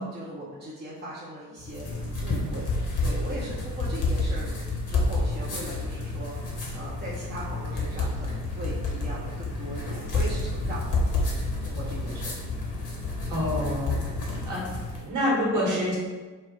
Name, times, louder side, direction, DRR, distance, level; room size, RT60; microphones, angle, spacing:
voice 1, 0.0-2.7 3.0-4.5 4.9-12.4, right 1 dB, 20° right, -8 dB, 0.8 m, -39 dB
sound 1, 1.6-15.0, left 2 dB, 40° left, 1.1 m, -29 dB
voice 2, 13.3-14.0 14.4-14.7 15.0-16.0, left 1 dB, 40° right, -4 dB, 1.4 m, -26 dB
4.0 x 2.1 x 3.1 m, 1.3 s
figure-of-eight pair, 40°, 47 cm